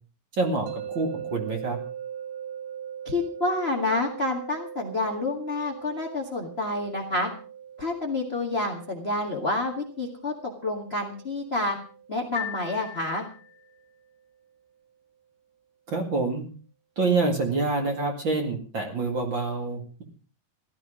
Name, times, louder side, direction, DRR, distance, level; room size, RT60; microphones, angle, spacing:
voice 1, 0.4-1.8 15.9-16.4 17.0-20.0, right 3 dB, 40° right, 3 dB, 2.2 m, -27 dB
sound 1, 0.7-13.7, right 9 dB, 65° right, 2.3 m, -41 dB
voice 2, 3.0-7.3 7.8-11.8 12.1-13.2, left 2 dB, 60° left, 2 dB, 0.6 m, -28 dB
sound 2, 12.4-13.8, left 10 dB, 80° left, 3.4 m, -38 dB
15.5 x 12.5 x 5.0 m, 0.38 s
omnidirectional pair, 4.5 m